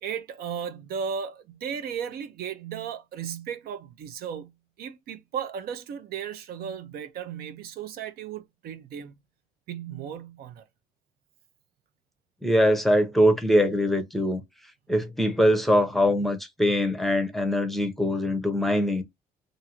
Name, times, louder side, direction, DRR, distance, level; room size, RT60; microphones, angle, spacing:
voice 1, 0.0-4.5 4.8-9.1 9.7-10.6, right 7 dB, 65° right, 0.5 m, -35 dB
voice 2, 12.4-14.4 14.9-19.0, equal, ahead, 0.6 m, -22 dB
2.5 x 2.5 x 2.8 m
cardioid pair, 110°, 17 cm